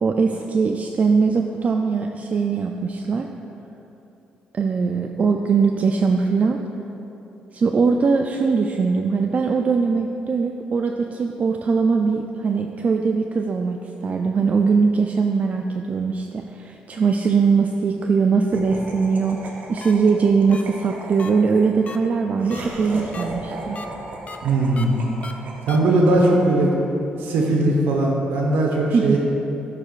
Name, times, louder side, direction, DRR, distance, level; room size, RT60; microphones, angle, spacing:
voice 1, 0.0-3.3 4.5-6.6 7.5-13.8 14.0-23.8 28.9-29.2, right 5 dB, 45° right, 3 dB, 0.3 m, -21 dB
Laughter, 18.5-26.9, right 2 dB, 60° right, 0.9 m, -37 dB
sound 1, 19.8-19.9 20.5-20.6 21.2-21.3 21.9-22.0 22.5-22.6 23.1-23.2 23.8-23.9 24.3-24.4 24.8-24.9 25.2-25.3 25.7-25.8, left 4 dB, 40° left, 0.5 m, -36 dB
voice 2, 24.4-25.0 25.7-26.7 27.2-29.2, right 2 dB, 85° right, -1 dB, 1.0 m, -19 dB
10.5 x 4.9 x 2.4 m, 2.9 s
supercardioid pair, 65°, 3 cm